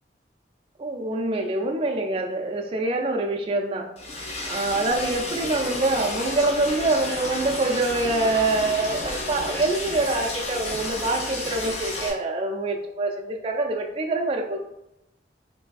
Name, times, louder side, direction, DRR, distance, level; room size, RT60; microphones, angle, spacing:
voice 1, 0.8-3.9 4.5-14.6, right 2 dB, 30° right, 2 dB, 0.3 m, -25 dB
Liquid, 4.0-12.1, left 2 dB, 35° left, 0.4 m, -32 dB
3.3 x 2.6 x 2.3 m, 0.85 s
head